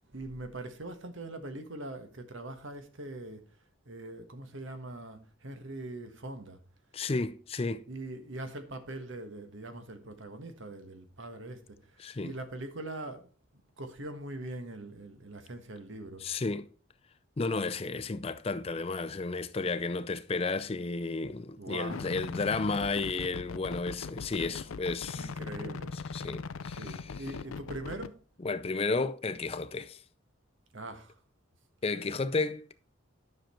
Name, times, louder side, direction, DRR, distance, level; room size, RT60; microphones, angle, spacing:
voice 1, 0.1-3.4 3.8-6.6 7.9-11.8 12.2-13.3 13.8-16.2 21.6-22.1 25.1-25.9 26.8-28.2 30.7-31.2, right 2 dB, 70° right, 1.4 m, -42 dB
voice 2, 6.9-7.8 12.0-12.3 16.2-16.7 17.4-25.3 25.6-27.2 28.4-30.0 31.8-32.7, left 3 dB, 30° left, 0.4 m, -33 dB
sound 1, 21.9-28.1, left 4 dB, 90° left, 0.5 m, -40 dB
10.5 x 6.7 x 4.4 m
head